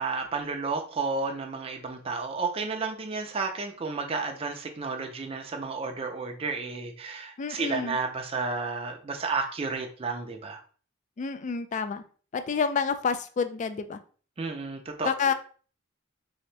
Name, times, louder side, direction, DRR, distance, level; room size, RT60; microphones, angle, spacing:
voice 1, 0.0-10.6 14.4-15.1, right 4 dB, 30° right, 3 dB, 0.4 m, -32 dB
voice 2, 7.4-8.0 11.2-12.0 12.3-14.0 15.0-15.3, left 5 dB, 35° left, 10 dB, 0.3 m, -28 dB
3.4 x 2.8 x 3.2 m, 0.41 s
head